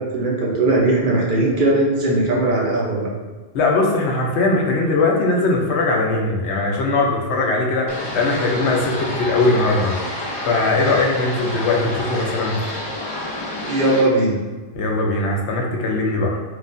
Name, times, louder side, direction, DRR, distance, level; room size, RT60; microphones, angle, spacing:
voice 1, 0.0-3.1 13.7-14.4, right 2 dB, 55° right, -3 dB, 0.8 m, -19 dB
voice 2, 3.5-10.1 10.5-12.6 14.7-16.4, left 2 dB, 85° left, 0 dB, 1.0 m, -20 dB
sound 1, 7.9-14.0, left 1 dB, 35° left, 0.5 m, -29 dB
4.6 x 2.4 x 2.5 m, 1.3 s
omnidirectional pair, 1.1 m